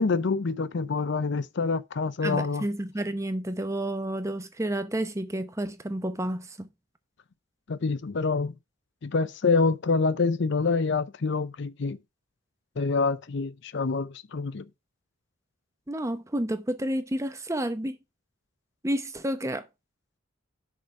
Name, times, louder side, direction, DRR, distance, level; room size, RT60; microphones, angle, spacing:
voice 1, 0.0-2.6 7.7-8.5 9.0-12.0 12.8-14.6, left 4 dB, 55° left, 0.5 m, -26 dB
voice 2, 2.2-6.7 15.9-18.0 18.8-19.6, right 1 dB, 15° right, 0.7 m, -30 dB
6.4 x 4.8 x 5.8 m
head